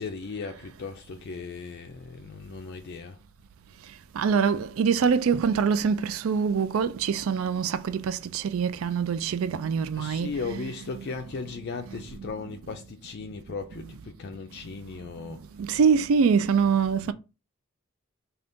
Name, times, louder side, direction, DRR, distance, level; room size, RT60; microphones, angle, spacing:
voice 1, 0.0-3.2 9.9-15.4 17.0-17.1, left 4 dB, 50° left, 0.4 m, -37 dB
voice 2, 4.2-10.7 15.6-17.1, right 6 dB, 75° right, 0.4 m, -24 dB
3.8 x 2.4 x 3.5 m
head